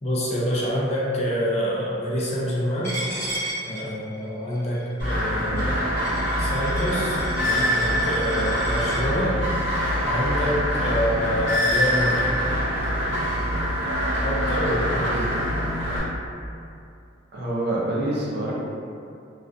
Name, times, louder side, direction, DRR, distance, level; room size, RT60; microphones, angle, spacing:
voice 1, 0.0-3.0 3.7-5.8 6.4-9.4 10.0-12.4 14.2-15.2, equal, 35° left, -6 dB, 0.4 m, -26 dB
Coin (dropping), 2.8-9.0, right 1 dB, 15° left, 1.0 m, -35 dB
sound 1, 5.0-16.0, equal, 75° right, 0.9 m, -24 dB
voice 2, 14.9-15.3 17.3-18.5, right 1 dB, 60° right, -5 dB, 0.5 m, -28 dB
2.5 x 2.3 x 2.2 m, 2.5 s
head